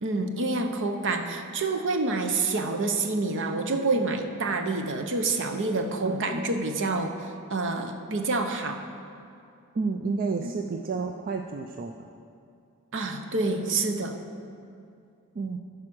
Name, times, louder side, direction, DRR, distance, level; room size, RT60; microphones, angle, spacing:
voice 1, 0.0-8.8 10.4-10.5 12.9-14.2, right 3 dB, 60° right, 5 dB, 0.8 m, -27 dB
voice 2, 9.7-12.1 15.3-15.6, right 4 dB, 40° right, 4 dB, 0.4 m, -30 dB
14.5 x 4.9 x 6.2 m, 2.4 s
head